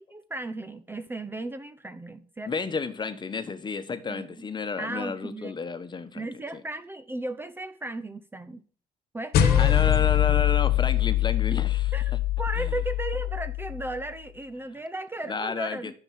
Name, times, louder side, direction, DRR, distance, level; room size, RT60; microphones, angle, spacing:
voice 1, 0.0-2.5 4.1-4.5 4.8-5.5 6.2-8.6 9.1-10.0 11.5-11.6 11.9-15.9, right 2 dB, 15° right, 0.7 m, -35 dB
voice 2, 2.5-6.6 9.6-11.9 12.6-12.7 15.3-15.9, left 5 dB, 25° left, 1.3 m, -31 dB
sound 1, 9.3-14.0, left 12 dB, 65° left, 1.4 m, -23 dB
11.0 x 7.0 x 7.6 m
cardioid pair, 110°, 17 cm